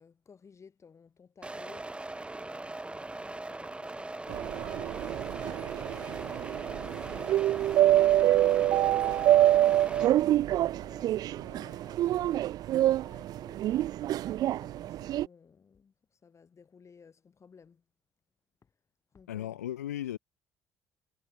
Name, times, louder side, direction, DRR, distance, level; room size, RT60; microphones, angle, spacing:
voice 1, 0.0-5.9 6.4-10.0 10.6-17.8 18.6-18.7 19.1-19.6, left 6 dB, 35° left, 4.4 m, -56 dB
sound 1, 1.4-10.1, right 2 dB, 15° right, 1.2 m, -40 dB
sound 2, 4.3-15.3, right 13 dB, 55° right, 0.3 m, -26 dB
voice 2, 19.3-20.2, left 12 dB, 85° left, 0.7 m, -36 dB
hypercardioid pair, 55°, 8 cm